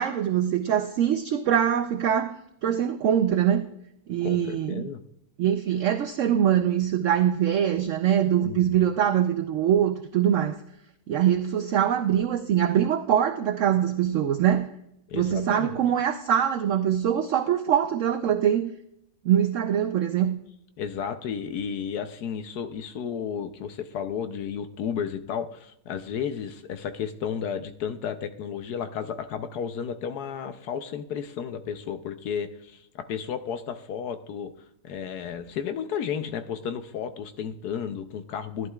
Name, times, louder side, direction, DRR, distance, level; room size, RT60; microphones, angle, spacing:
voice 1, 0.0-2.4 2.6-3.6 4.1-4.9 5.4-10.6 11.1-14.7 15.1-18.7 19.2-20.4, right 10 dB, 70° right, 9 dB, 0.7 m, -23 dB
voice 2, 4.2-5.0 8.4-8.9 15.1-15.8 20.8-34.5 34.8-38.7, left 7 dB, 75° left, 9 dB, 1.2 m, -33 dB
14.5 x 11.0 x 2.3 m, 0.80 s
omnidirectional pair, 1.7 m